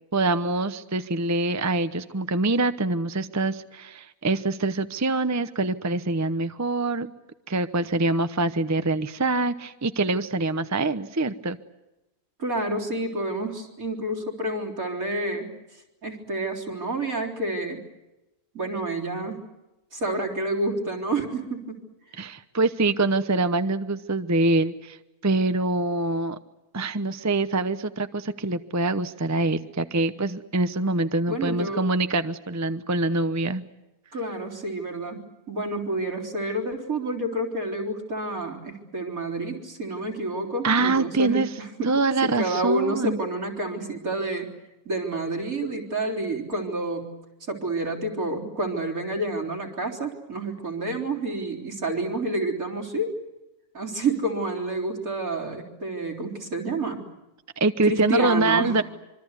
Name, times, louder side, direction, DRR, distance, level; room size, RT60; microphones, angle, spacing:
voice 1, 0.1-7.1 7.5-11.6 22.2-25.0 25.2-26.4 26.7-33.6 40.6-41.5 41.8-43.2 57.6-58.8, right 2 dB, 15° right, 11 dB, 0.7 m, -24 dB
voice 2, 12.4-17.8 18.5-19.5 19.9-21.9 31.3-31.9 34.1-42.0 42.2-44.5 44.9-47.1 47.5-53.1 53.7-57.0 57.9-58.8, right 2 dB, 70° right, 1 dB, 4.3 m, -29 dB
25.5 x 24.0 x 8.2 m, 0.97 s
omnidirectional pair, 1.5 m